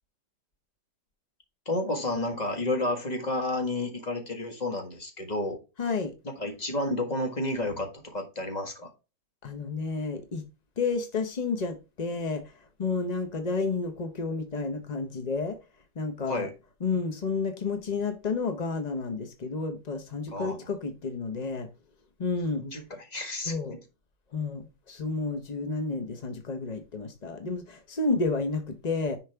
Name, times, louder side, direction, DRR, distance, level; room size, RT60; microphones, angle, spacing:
voice 1, 1.6-5.6 6.2-8.9 16.3-16.5 20.3-20.6 22.6-23.5, left 2 dB, 25° left, 1.6 m, -31 dB
voice 2, 5.8-6.1 9.4-10.4 10.8-15.6 16.0-16.5 16.8-21.7 22.2-22.6 23.5-23.8 24.3-29.2, left 4 dB, 40° left, 0.6 m, -31 dB
10.5 x 4.9 x 3.4 m
omnidirectional pair, 1.9 m